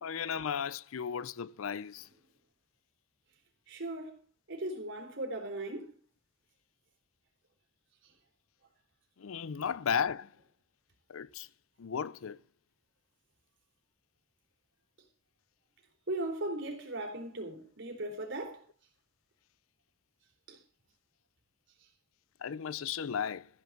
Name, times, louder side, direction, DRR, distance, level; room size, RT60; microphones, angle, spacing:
voice 1, 0.0-2.1 9.2-10.3 11.1-11.5 11.8-12.4 22.4-23.5, left 7 dB, 80° left, 0.5 m, -35 dB
voice 2, 3.7-4.2 4.5-5.9 16.1-18.6 20.5-20.6, right 1 dB, 60° right, 3.9 m, -37 dB
14.5 x 7.1 x 6.7 m
head